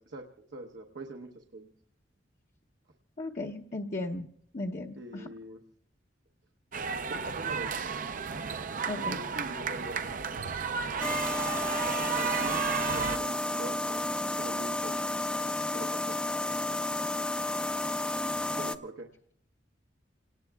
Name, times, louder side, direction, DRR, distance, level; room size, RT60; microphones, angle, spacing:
voice 1, 0.0-1.7 5.0-5.6 7.1-7.9 9.0-10.4 12.1-14.0 14.4-15.0 15.7-16.2 18.5-19.1, right 1 dB, 70° right, 2 dB, 1.0 m, -43 dB
voice 2, 3.2-4.3 4.5-5.3 8.9-9.2, left 2 dB, 40° left, -1 dB, 0.8 m, -36 dB
sound 1, 6.7-13.2, right 6 dB, 45° right, 0.6 m, -33 dB
sound 2, 11.0-18.8, left 1 dB, 5° left, 0.5 m, -31 dB
29.0 x 19.0 x 2.3 m, 0.65 s
head